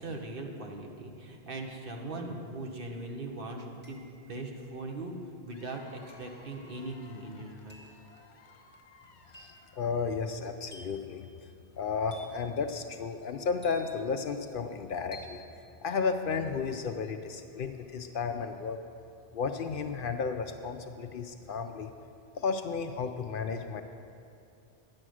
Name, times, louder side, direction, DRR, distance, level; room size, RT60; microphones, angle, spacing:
voice 1, 0.0-4.0 4.3-5.1 5.4-7.8, right 2 dB, 55° right, 2 dB, 1.2 m, -40 dB
sound 1, 2.7-2.8 3.8-4.4 6.1-6.4 7.7-8.0 9.3-9.7 10.7-11.1 12.1-12.5 13.6-14.2 15.1-15.5, equal, 10° right, 1.6 m, -52 dB
Cheering / Applause / Crowd, 5.5-10.2, left 4 dB, 90° left, 1.1 m, -58 dB
voice 2, 9.3-11.5 11.7-15.4 15.8-18.8 19.3-21.9 22.4-23.8, left 5 dB, 60° left, 7 dB, 0.7 m, -33 dB
9.9 x 8.7 x 6.2 m, 2.6 s
omnidirectional pair, 1.1 m